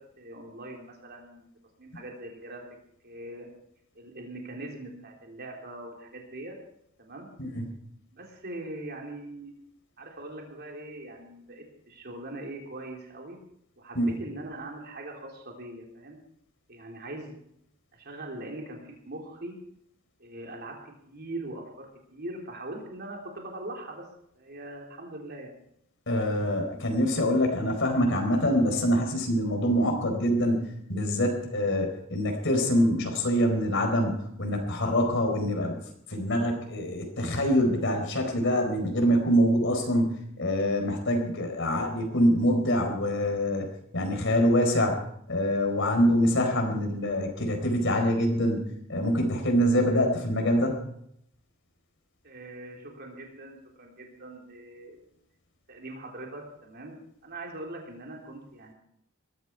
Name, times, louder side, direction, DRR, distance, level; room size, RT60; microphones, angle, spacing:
voice 1, 0.0-1.5 1.8-2.6 3.0-3.5 4.0-6.6 7.0-7.3 8.1-9.5 10.0-13.4 13.8-16.2 16.7-17.4 17.9-19.6 20.2-24.0 24.3-25.5 52.2-55.1 55.7-58.7, right 1 dB, 50° right, 0 dB, 3.6 m, -41 dB
voice 2, 7.4-7.7 13.9-14.2 26.1-35.8 36.1-43.7 43.9-45.0 45.3-50.8, equal, 65° left, 3 dB, 4.4 m, -25 dB
21.0 x 14.0 x 4.7 m, 0.72 s
head